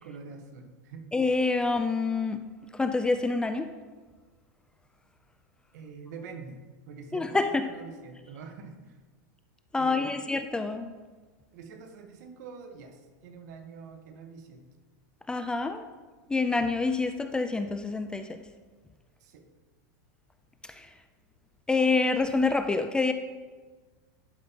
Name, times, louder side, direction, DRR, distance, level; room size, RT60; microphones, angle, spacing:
voice 1, 0.0-1.1 5.7-6.6 6.9-9.0 9.8-10.2 11.5-14.7 19.2-19.5, right 5 dB, 70° right, 6 dB, 1.1 m, -45 dB
voice 2, 1.1-2.5 2.7-3.7 7.1-7.7 9.7-10.9 15.3-15.8 16.3-18.4 20.6-20.9 21.7-23.1, left 3 dB, 10° left, 8 dB, 0.3 m, -27 dB
11.5 x 5.2 x 2.9 m, 1.3 s
supercardioid pair, 135°, 10 cm